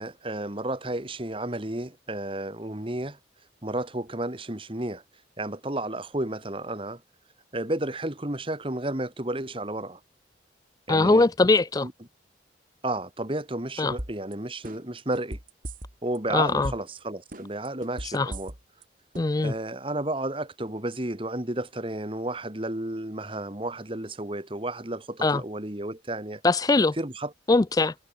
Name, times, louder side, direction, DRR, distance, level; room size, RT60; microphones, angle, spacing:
voice 1, 0.0-3.2 3.6-5.0 5.4-7.0 7.5-10.0 10.9-11.3 11.8-11.9 12.8-15.4 16.0-18.5 19.4-26.4 27.0-27.3, right 1 dB, 30° right, 1.9 m, -32 dB
voice 2, 10.9-11.9 13.8-13.9 16.3-16.7 18.1-18.3 19.2-19.5 25.2-25.4 26.4-27.0 27.5-27.9, left 3 dB, 20° left, 0.4 m, -21 dB
sound 1, 14.0-14.3 14.6-16.2 16.5-17.0 17.3-18.8 19.1-19.2, right 1 dB, 45° right, 4.1 m, -36 dB
head